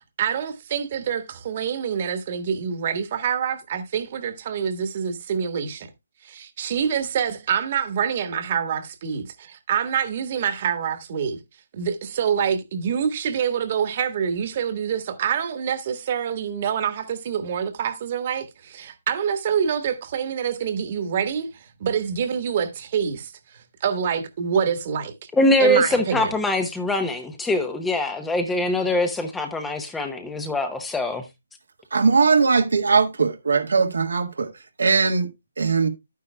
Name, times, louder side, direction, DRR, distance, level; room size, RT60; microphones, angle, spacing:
voice 1, 0.2-5.9 6.2-11.4 11.7-25.1 25.6-26.3, right 7 dB, 40° right, 1.6 m, -26 dB
voice 2, 25.3-31.2, left 1 dB, 5° left, 0.9 m, -23 dB
voice 3, 31.9-34.5 34.8-35.3 35.6-35.9, right 5 dB, 75° right, 1.6 m, -20 dB
11.0 x 9.4 x 2.3 m
hypercardioid pair, 155°, 0 cm